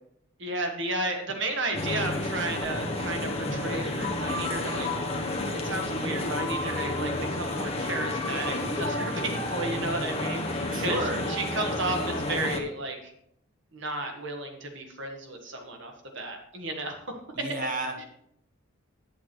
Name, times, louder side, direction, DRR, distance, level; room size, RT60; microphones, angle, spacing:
voice 1, 0.4-5.0 5.6-13.1 13.7-17.1 18.0-18.1, right 2 dB, 60° right, 3 dB, 1.6 m, -33 dB
sound 1, 1.7-12.6, left 2 dB, 30° left, 1.0 m, -30 dB
voice 2, 10.7-11.2 17.3-18.0, right 2 dB, 40° right, 2 dB, 1.6 m, -31 dB
8.5 x 8.3 x 4.5 m, 0.70 s
head